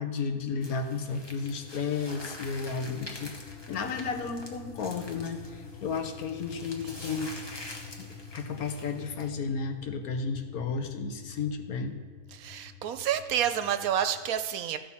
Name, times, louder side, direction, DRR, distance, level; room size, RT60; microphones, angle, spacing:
voice 1, 0.0-3.3 3.7-7.3 8.0-8.1 8.3-11.9, left 5 dB, 75° left, 7 dB, 1.3 m, -33 dB
sound 1, 0.6-9.3, left 1 dB, 20° left, 0.8 m, -46 dB
sound 2, 1.0-14.3, left 5 dB, 50° left, 1.0 m, -47 dB
voice 2, 12.3-14.8, right 9 dB, 75° right, 10 dB, 1.0 m, -29 dB
14.5 x 5.9 x 4.2 m, 1.5 s
omnidirectional pair, 1.6 m